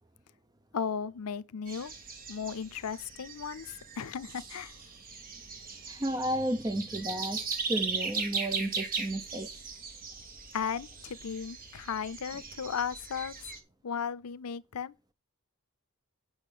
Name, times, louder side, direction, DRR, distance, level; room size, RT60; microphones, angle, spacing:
voice 1, 0.7-1.9 2.3-4.8 10.5-13.6 13.8-14.9, left 7 dB, 85° left, 0.6 m, -36 dB
sound 1, 1.7-13.6, right 5 dB, 40° right, 2.0 m, -39 dB
voice 2, 5.9-9.5, right 1 dB, 15° right, 0.7 m, -33 dB
8.7 x 6.2 x 6.1 m
head